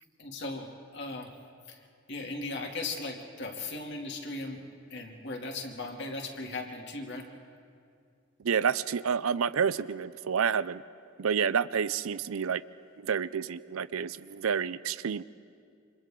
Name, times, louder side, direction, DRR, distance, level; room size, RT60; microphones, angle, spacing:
voice 1, 0.2-0.7 0.9-1.3 1.7-4.6 4.9-7.3, left 2 dB, 55° left, 1 dB, 2.6 m, -37 dB
voice 2, 8.4-10.8 11.2-12.6 13.0-15.2, right 7 dB, 80° right, 17 dB, 0.5 m, -29 dB
29.0 x 26.0 x 3.8 m, 2.4 s
head